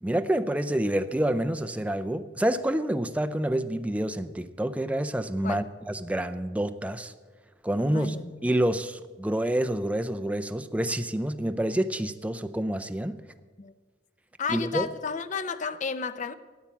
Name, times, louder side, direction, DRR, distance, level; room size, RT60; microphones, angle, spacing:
voice 1, 0.0-7.1 7.6-8.1 8.4-13.2 14.5-14.9, right 1 dB, 10° right, 0.5 m, -28 dB
voice 2, 7.8-8.3 13.6-13.7 14.4-16.3, left 5 dB, 45° left, 0.6 m, -32 dB
13.5 x 8.7 x 7.3 m
head